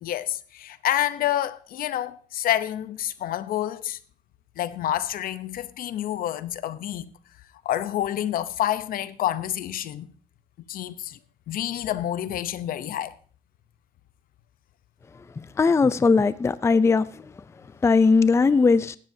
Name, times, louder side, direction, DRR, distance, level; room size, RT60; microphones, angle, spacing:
voice 1, 0.0-4.0 4.6-7.1 7.6-10.1 10.7-11.2 11.5-13.2, left 12 dB, 75° left, 0.8 m, -28 dB
voice 2, 15.6-17.2 17.8-19.0, left 4 dB, 20° left, 0.4 m, -19 dB
16.5 x 12.5 x 2.8 m
cardioid pair, 115°, 15 cm